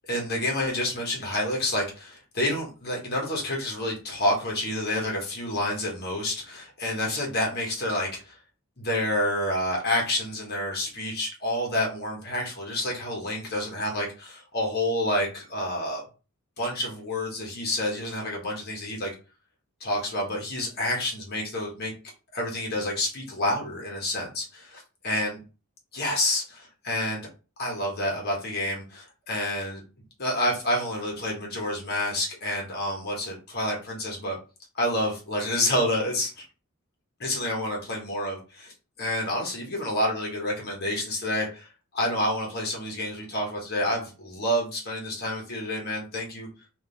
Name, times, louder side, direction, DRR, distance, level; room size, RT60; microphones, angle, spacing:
voice 1, 0.1-8.4 8.8-16.0 16.6-19.1 19.8-21.9 22.3-24.7 25.0-25.4 25.9-27.3 27.6-29.8 30.2-34.4 34.7-36.4 37.2-38.7 39.0-46.5, left 1 dB, 50° left, -1 dB, 1.2 m, -28 dB
3.7 x 2.7 x 3.9 m, 0.33 s
head